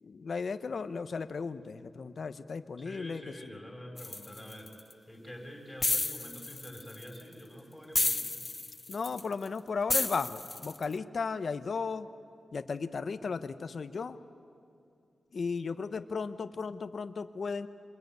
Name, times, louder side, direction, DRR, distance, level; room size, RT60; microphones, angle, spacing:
voice 1, 0.0-3.6 8.9-12.1 12.5-14.2 15.3-17.7, left 5 dB, 50° left, 11 dB, 0.9 m, -35 dB
voice 2, 2.8-4.7 5.1-8.4, equal, ahead, 1 dB, 5.9 m, -46 dB
sound 1, 4.0-4.9 5.8-7.2 7.9-9.5 9.9-10.8, left 2 dB, 25° left, 0.5 m, -31 dB
25.5 x 22.0 x 9.4 m, 2.6 s
wide cardioid pair, 125°, 0 cm